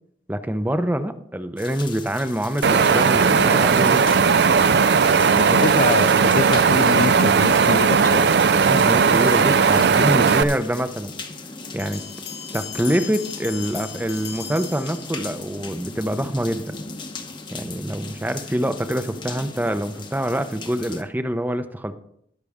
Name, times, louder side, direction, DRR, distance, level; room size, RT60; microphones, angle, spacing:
voice 1, 0.3-4.0 8.6-11.1 11.7-12.0 12.5-16.8 17.5-22.0, right 1 dB, 10° right, 0.6 m, -25 dB
sound 1, 1.6-21.0, left 4 dB, 25° left, 0.9 m, -38 dB
Wind, 2.6-10.4, right 5 dB, 65° right, 0.5 m, -17 dB
voice 2, 5.4-8.3, left 4 dB, 45° left, 0.3 m, -25 dB
sound 2, 11.8-15.6, left 9 dB, 70° left, 1.2 m, -37 dB
20.0 x 6.7 x 3.6 m
head